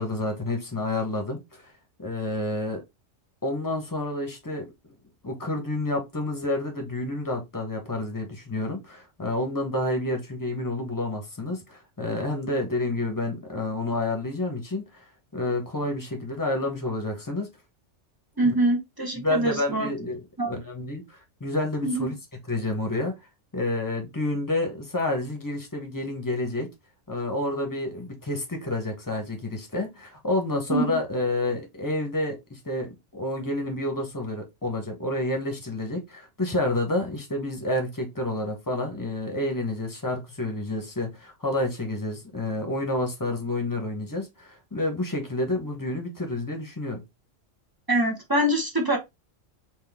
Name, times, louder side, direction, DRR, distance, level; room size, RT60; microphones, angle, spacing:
voice 1, 0.0-1.7 2.0-2.8 3.4-5.0 5.2-15.1 15.3-17.5 18.4-18.5 19.2-22.1 22.5-23.1 23.5-26.7 27.1-47.0, left 2 dB, 15° left, 1.0 m, -29 dB
voice 2, 18.4-19.9 20.4-20.5 21.8-22.1 30.7-31.0 47.9-49.0, right 1 dB, 20° right, 0.9 m, -24 dB
4.1 x 2.7 x 3.4 m
omnidirectional pair, 1.3 m